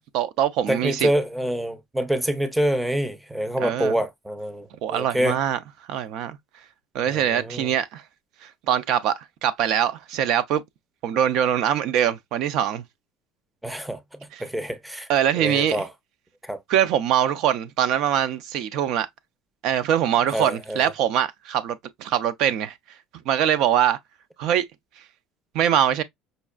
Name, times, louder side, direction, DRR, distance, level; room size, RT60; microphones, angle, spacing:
voice 1, 0.1-1.1 3.6-4.0 4.8-5.6 5.9-6.4 6.9-8.0 8.4-10.6 11.0-12.8 14.3-14.4 15.1-15.8 16.7-19.1 19.6-22.8 23.3-24.0 24.4-24.7 25.5-26.0, right 10 dB, 60° right, 0.4 m, -23 dB
voice 2, 0.7-5.4 7.0-7.7 13.6-14.0 14.4-15.1 15.4-15.9 16.4-16.6 20.3-20.9, right 1 dB, 5° right, 0.5 m, -26 dB
5.2 x 2.3 x 2.3 m
cardioid pair, 140°, 0 cm